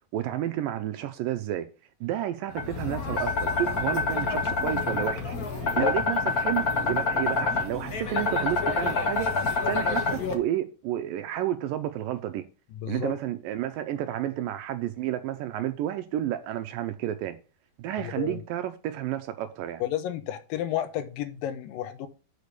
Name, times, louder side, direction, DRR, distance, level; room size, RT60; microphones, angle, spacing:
voice 1, 0.1-1.7 2.0-9.3 9.7-12.4 12.9-17.4 17.8-19.8, right 12 dB, 80° right, 2.2 m, -31 dB
sound 1, 2.5-10.3, left 4 dB, 90° left, 0.8 m, -27 dB
voice 2, 12.8-13.1 18.0-18.4 19.8-22.1, left 9 dB, 75° left, 2.6 m, -31 dB
6.6 x 5.2 x 6.8 m
omnidirectional pair, 4.2 m